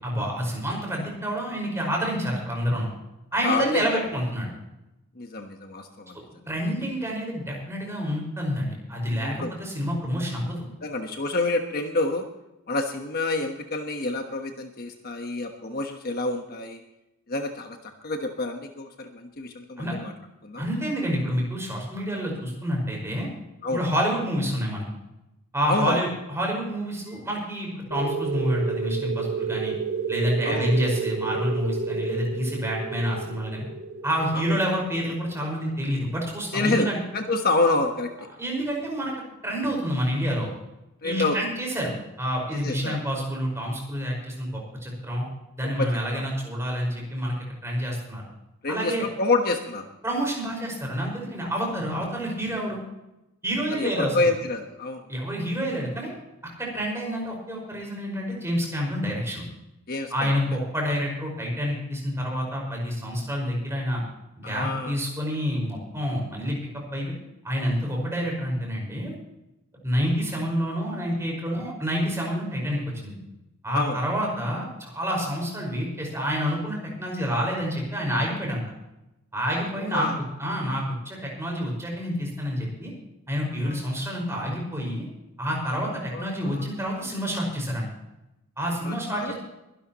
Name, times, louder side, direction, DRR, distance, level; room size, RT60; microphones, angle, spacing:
voice 1, 0.0-2.9 3.3-4.5 6.5-10.6 19.8-19.9 20.6-23.3 23.7-24.8 25.5-29.7 30.1-33.6 34.0-37.0 38.4-39.1 39.4-40.5 41.0-41.9 42.2-45.3 45.6-47.4 47.6-48.2 48.7-49.1 50.0-52.8 53.4-54.3 55.1-56.1 56.6-59.4 60.1-64.0 64.4-66.6 66.9-67.1 67.4-69.1 69.8-73.1 73.6-78.6 79.3-80.1 80.4-82.9 83.3-85.1 85.4-87.9 88.6-89.3, equal, 15° right, -1 dB, 5.4 m, -28 dB
voice 2, 3.4-4.0 5.2-6.2 9.2-9.5 10.8-12.2 12.7-16.8 17.3-20.1 20.4-20.6 23.6-23.8 25.7-26.0 30.4-30.7 34.3-34.6 36.5-38.1 41.0-41.4 42.5-43.0 45.8-46.2 48.6-49.9 53.7-55.0 59.9-60.6 64.4-65.0 73.7-74.0 79.8-80.2 83.6-83.8 84.1-84.2 86.1-86.7 88.8-89.3, left 2 dB, 45° left, 4 dB, 1.2 m, -28 dB
sound 1, 27.9-36.2, right 5 dB, 65° right, 3.3 m, -31 dB
23.0 x 12.0 x 3.0 m, 0.92 s
head